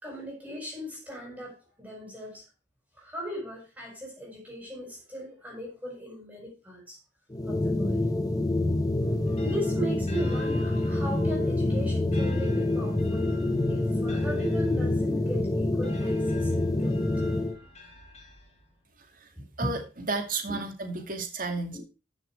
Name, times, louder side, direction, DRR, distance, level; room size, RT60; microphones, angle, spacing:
voice 1, 0.0-2.4 3.0-7.0 7.5-8.0 9.4-13.3 13.7-16.5 16.8-17.1 17.6-17.7 19.4-19.8 20.5-20.6 21.7-21.8, equal, 10° right, -2 dB, 4.9 m, -38 dB
sound 1, 7.3-17.6, left 2 dB, 20° left, 0.8 m, -26 dB
sound 2, 9.0-18.9, left 1 dB, 35° left, 3.2 m, -49 dB
voice 2, 19.6-21.8, right 3 dB, 50° right, 5 dB, 2.4 m, -32 dB
13.5 x 6.1 x 4.6 m, 0.32 s
head